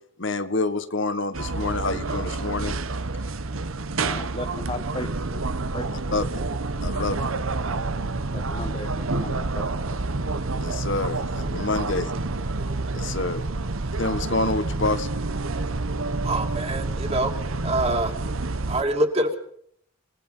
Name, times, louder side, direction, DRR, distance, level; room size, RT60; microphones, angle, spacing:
voice 1, 0.2-2.8 6.1-6.4 6.8-7.2 10.6-12.1 12.9-13.4 14.0-15.1, left 3 dB, 65° left, 10 dB, 1.4 m, -27 dB
sound 1, 1.3-18.8, right 3 dB, 80° right, 1.2 m, -28 dB
voice 2, 3.9-5.4 5.7-5.9 6.9-7.1 7.4-7.5 8.3-9.7, left 1 dB, 25° left, 7 dB, 1.3 m, -36 dB
voice 3, 16.2-18.2 18.6-19.4, right 1 dB, 30° right, 4 dB, 2.6 m, -25 dB
27.5 x 19.0 x 5.6 m, 0.65 s
head